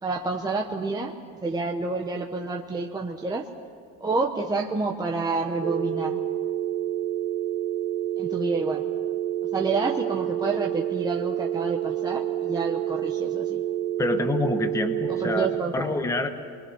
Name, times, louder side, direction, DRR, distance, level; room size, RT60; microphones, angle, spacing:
voice 1, 0.0-1.2 1.4-3.5 4.0-6.2 8.2-8.9 9.5-13.6 15.2-16.0, right 3 dB, 10° right, 1 dB, 0.9 m, -29 dB
sound 1, 5.6-15.6, right 11 dB, 25° right, 1.5 m, -28 dB
voice 2, 14.0-15.5 15.7-16.3, left 2 dB, 10° left, 6 dB, 1.0 m, -26 dB
27.5 x 22.5 x 6.0 m, 2.3 s
cardioid pair, 165°, 35 cm